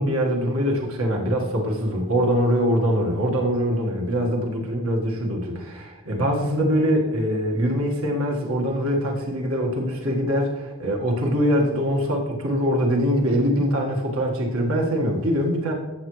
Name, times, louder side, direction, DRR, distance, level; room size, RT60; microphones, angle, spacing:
voice 1, 0.0-15.7, equal, 70° right, 0 dB, 1.6 m, -23 dB
13.5 x 7.2 x 3.1 m, 1.2 s
head